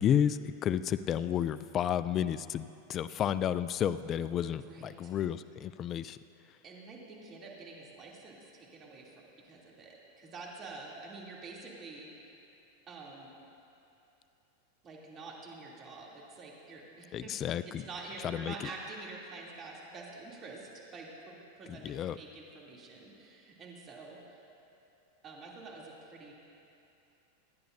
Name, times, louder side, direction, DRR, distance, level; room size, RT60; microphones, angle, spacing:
voice 1, 0.0-6.2 17.1-17.8 18.2-18.7 21.7-22.2, left 9 dB, 35° left, 14 dB, 0.4 m, -31 dB
voice 2, 4.6-5.1 6.6-12.3 12.9-13.3 14.8-17.4 17.8-24.2 25.2-26.3, right 3 dB, 35° right, -3 dB, 3.0 m, -47 dB
26.5 x 10.5 x 2.7 m, 2.7 s
hypercardioid pair, 105°, 0 cm